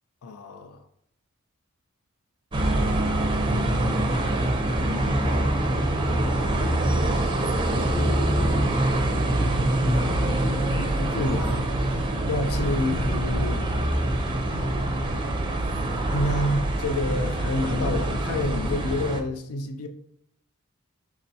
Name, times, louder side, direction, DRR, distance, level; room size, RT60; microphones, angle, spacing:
voice 1, 0.2-0.8 4.8-5.4 7.8-8.9 9.8-11.6 11.9-13.7 16.1-19.9, left 1 dB, 85° left, 0.4 m, -30 dB
sound 1, 2.5-19.2, right 1 dB, 20° right, 0.5 m, -24 dB
5.5 x 3.1 x 2.7 m
head